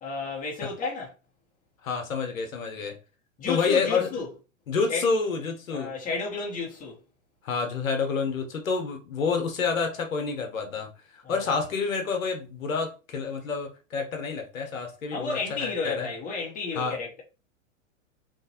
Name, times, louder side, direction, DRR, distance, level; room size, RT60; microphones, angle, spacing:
voice 1, 0.0-1.1 3.4-4.3 4.9-5.0 5.7-7.0 11.2-11.3 15.1-17.2, left 4 dB, 20° left, 1.1 m, -32 dB
voice 2, 1.8-3.0 3.5-4.1 4.7-5.9 7.4-16.1 16.7-17.0, left 5 dB, 90° left, 1.0 m, -28 dB
3.2 x 2.4 x 2.7 m
hypercardioid pair, 120°, 39 cm